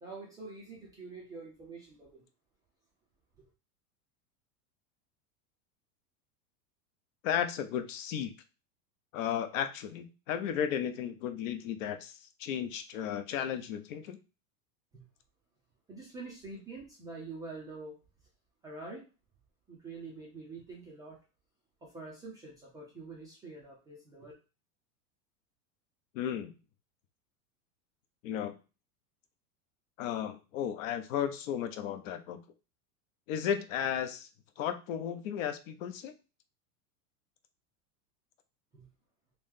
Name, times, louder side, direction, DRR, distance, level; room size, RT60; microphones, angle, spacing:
voice 1, 0.0-2.2 3.4-3.5 14.9-15.0 15.9-17.9 18.6-19.1 19.7-21.2 21.8-24.3 38.7-38.9, right 3 dB, 10° right, -5 dB, 0.3 m, -46 dB
voice 2, 7.2-8.3 9.1-14.2 26.1-26.5 28.2-28.6 30.0-32.4 33.3-34.3 34.6-36.1, left 9 dB, 60° left, 9 dB, 0.7 m, -34 dB
3.0 x 2.7 x 3.6 m, 0.31 s
supercardioid pair, 140°, 44 cm